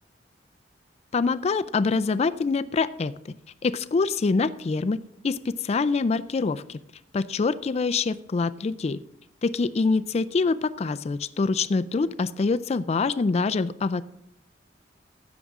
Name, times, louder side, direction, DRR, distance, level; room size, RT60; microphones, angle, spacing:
voice 1, 1.1-3.1 3.6-5.0 5.2-6.8 7.1-9.0 9.4-14.0, left 4 dB, 35° left, 13 dB, 0.3 m, -25 dB
15.5 x 7.1 x 3.6 m, 0.80 s
head